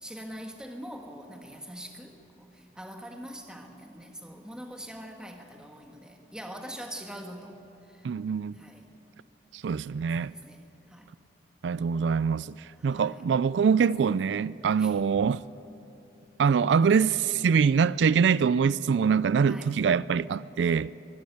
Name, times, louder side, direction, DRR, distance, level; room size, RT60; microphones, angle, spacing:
voice 1, 0.0-7.6 7.9-8.1 8.6-8.9 10.2-10.6 10.9-11.1 12.8-13.2 14.7-14.9 19.5-19.8, equal, 5° right, 1.7 m, -43 dB
voice 2, 8.0-8.6 9.5-10.3 11.6-15.4 16.4-20.9, right 6 dB, 90° right, 0.4 m, -24 dB
23.5 x 13.0 x 9.3 m
head